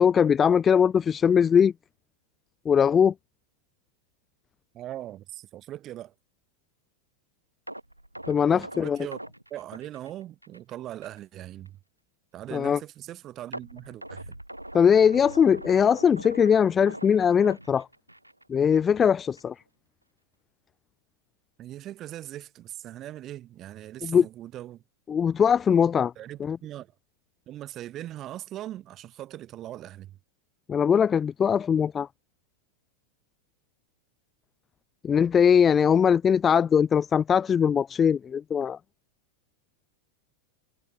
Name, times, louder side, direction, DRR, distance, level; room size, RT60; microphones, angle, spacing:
voice 1, 0.0-1.7 2.7-3.1 8.3-9.0 12.5-12.8 14.7-17.9 18.5-19.5 24.0-24.2 25.1-26.1 26.4-26.6 30.7-32.1 35.0-38.8, left 7 dB, 20° left, 0.3 m, -21 dB
voice 2, 4.7-6.1 8.5-9.2 9.5-11.8 12.3-14.4 21.6-24.8 26.2-26.9 27.5-30.2, right 13 dB, 30° right, 7.2 m, -40 dB
sound 1, 7.7-10.7 11.0-11.2 11.7-11.8 13.5-18.4 18.7-18.9 19.4-19.5, right 1 dB, 85° right, 1.4 m, -42 dB
figure-of-eight pair, 90°, 0 cm